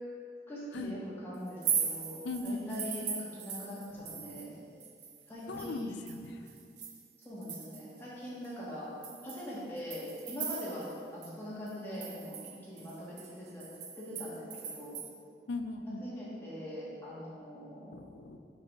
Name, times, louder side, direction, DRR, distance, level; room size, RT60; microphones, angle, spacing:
voice 1, 0.5-4.6 5.3-6.1 7.2-8.9 9.2-10.9 11.1-12.3 12.6-13.6 14.0-15.0 15.9-18.0, equal, 10° left, -9 dB, 1.5 m, -42 dB
sound 1, 1.5-4.5 4.8-8.0 8.4-8.5 9.0-11.0 11.2-11.3 11.7-15.1, right 7 dB, 75° right, 0.6 m, -39 dB
voice 2, 2.2-2.9 4.0-4.5 5.5-6.4 15.5-16.0 17.9-18.4, left 3 dB, 85° left, 6 dB, 0.5 m, -39 dB
5.5 x 3.8 x 5.2 m, 2.3 s
head